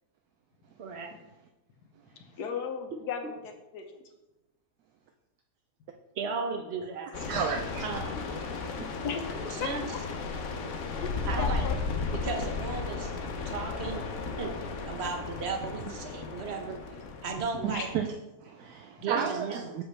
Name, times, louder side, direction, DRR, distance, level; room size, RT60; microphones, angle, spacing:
voice 1, 0.8-1.1 6.2-7.1 7.8-8.3 9.5-9.9 11.2-11.7 12.1-13.1 13.4-14.0 14.4-14.5 14.8-16.8 17.2-17.9 19.0-19.8, right 4 dB, 45° right, 4 dB, 1.1 m, -35 dB
voice 2, 2.2-3.9 8.9-10.0 11.0-11.8 12.1-12.2 17.7-17.9, left 6 dB, 80° left, 5 dB, 1.5 m, -36 dB
sound 1, 7.1-18.0, left 4 dB, 55° left, 1.0 m, -35 dB
voice 3, 7.3-7.8 8.8-8.9 17.6-18.1 18.4-19.8, right 7 dB, 75° right, 4 dB, 1.1 m, -32 dB
7.8 x 6.8 x 3.3 m, 1.0 s
omnidirectional pair, 1.7 m